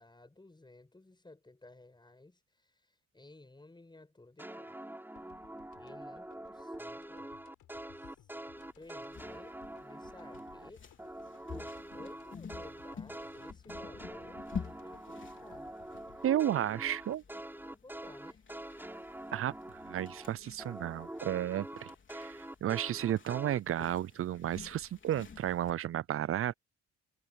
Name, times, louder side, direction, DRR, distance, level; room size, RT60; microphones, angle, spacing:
voice 1, 0.0-4.8 5.8-7.4 8.8-10.8 11.5-15.7 16.6-18.4, left 2 dB, 15° left, 5.8 m, -56 dB
sound 1, 4.4-10.7 11.0-20.3 20.6-23.6, right 1 dB, 5° right, 6.0 m, -45 dB
sound 2, 5.1-18.0, left 12 dB, 80° left, 7.8 m, -63 dB
sound 3, 8.6-25.7, left 6 dB, 40° left, 4.2 m, -50 dB
voice 2, 16.2-17.2 19.3-19.5 19.8-26.5, right 11 dB, 45° right, 0.5 m, -33 dB
cardioid pair, 90°, 30 cm